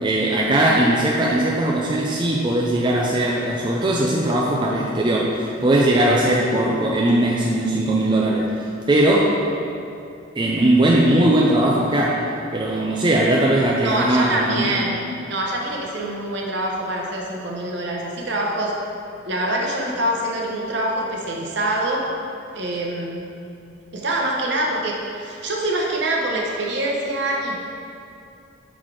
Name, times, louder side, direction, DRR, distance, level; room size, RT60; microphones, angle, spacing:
voice 1, 0.0-8.5 8.9-9.4 10.4-12.2 12.5-14.6, right 1 dB, 25° right, -3 dB, 0.4 m, -19 dB
voice 2, 13.8-15.0 15.3-18.7 19.2-22.0 22.5-23.3 23.9-27.7, right 1 dB, 55° right, -1 dB, 0.9 m, -25 dB
6.0 x 4.0 x 4.8 m, 2.7 s
head